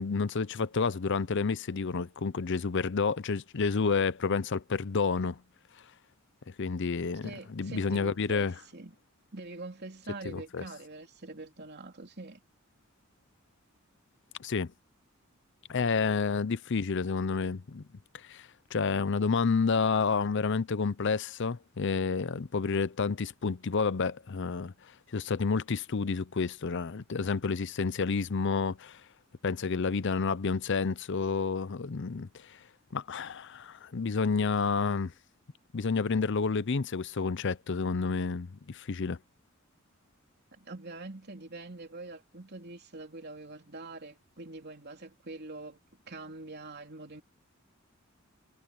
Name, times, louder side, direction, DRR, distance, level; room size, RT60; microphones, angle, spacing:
voice 1, 0.0-5.4 6.6-8.5 10.3-10.6 14.4-14.7 15.7-17.8 18.3-24.7 25.1-29.0 29.4-32.6 32.9-35.1 35.7-39.2, left 4 dB, 60° left, 0.6 m, -30 dB
voice 2, 7.2-8.9 9.3-12.4 40.5-45.8 46.1-47.2, right 2 dB, 50° right, 3.3 m, -44 dB
head